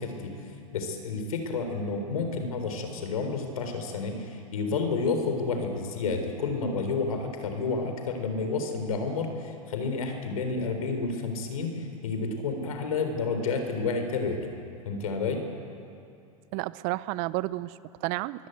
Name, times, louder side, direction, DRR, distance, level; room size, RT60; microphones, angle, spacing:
voice 1, 0.0-14.5 14.8-15.5, left 4 dB, 75° left, 5 dB, 3.9 m, -30 dB
voice 2, 16.5-18.5, right 19 dB, 50° right, 17 dB, 0.6 m, -31 dB
23.5 x 17.5 x 8.2 m, 2.5 s
hypercardioid pair, 100°, 18 cm